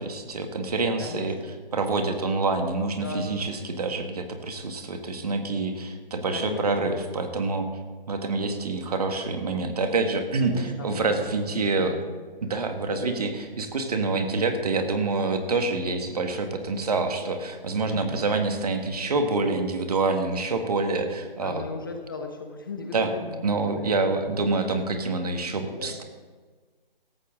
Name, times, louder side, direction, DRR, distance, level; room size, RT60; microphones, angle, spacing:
voice 1, 0.0-1.4 1.7-7.7 8.1-11.9 12.4-21.6 22.9-23.1 23.4-26.0, right 3 dB, 40° right, 5 dB, 1.7 m, -27 dB
voice 2, 1.0-1.5 3.0-3.5 6.3-6.7 10.4-11.3 11.8-12.0 12.8-13.3 17.8-18.3 21.4-24.0 25.4-26.0, left 4 dB, 25° left, 4 dB, 0.9 m, -37 dB
18.0 x 14.5 x 3.8 m, 1.4 s
figure-of-eight pair, 165°, 29 cm